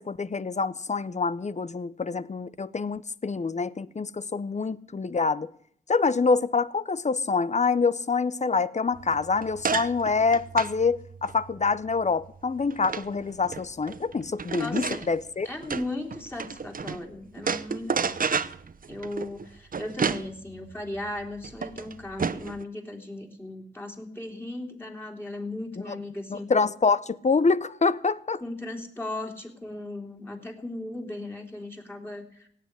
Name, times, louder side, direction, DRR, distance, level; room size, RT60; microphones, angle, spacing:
voice 1, 0.0-5.5 5.9-15.5 25.9-26.0 26.3-28.4, left 4 dB, 40° left, 0.7 m, -26 dB
sound 1, 8.9-17.0 17.4-22.6, right 5 dB, 50° right, 0.8 m, -32 dB
voice 2, 14.6-15.1 15.4-18.2 18.9-26.5 28.4-32.5, left 2 dB, 10° left, 3.4 m, -37 dB
17.0 x 7.4 x 9.7 m
cardioid pair, 55°, 19 cm